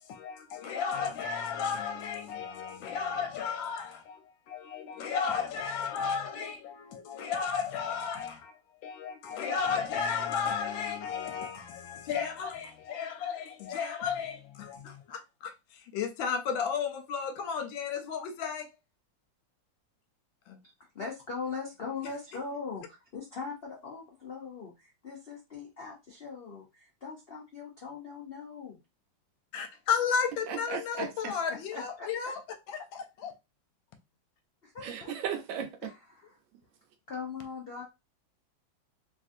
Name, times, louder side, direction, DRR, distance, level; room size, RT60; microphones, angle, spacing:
voice 1, 0.1-18.7 20.5-20.6 29.5-32.4 32.7-33.3, left 6 dB, 85° left, 1.4 m, -34 dB
voice 2, 20.9-28.8 31.0-32.3 34.6-35.1 35.8-36.3 37.1-37.8, left 5 dB, 65° left, 0.5 m, -41 dB
voice 3, 30.5-31.1 34.8-35.9, right 8 dB, 80° right, 1.3 m, -35 dB
3.2 x 2.6 x 2.5 m
omnidirectional pair, 2.1 m